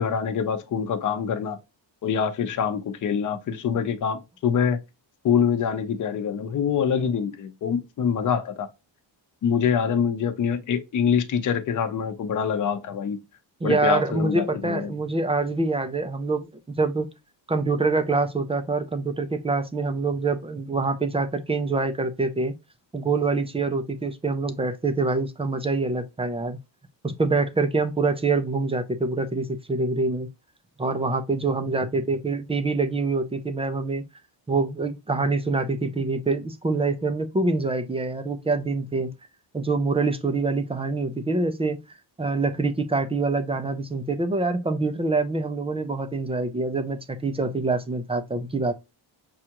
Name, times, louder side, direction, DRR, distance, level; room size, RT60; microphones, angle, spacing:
voice 1, 0.0-1.6 2.0-4.8 5.2-8.7 9.4-13.2 13.6-14.9, left 7 dB, 40° left, 0.6 m, -25 dB
voice 2, 13.6-16.5 16.8-17.1 17.5-22.5 22.9-26.6 27.0-30.3 30.8-34.0 34.5-39.1 39.5-41.8 42.2-48.7, right 3 dB, 15° right, 0.3 m, -25 dB
6.3 x 2.3 x 2.9 m
cardioid pair, 160°, 46 cm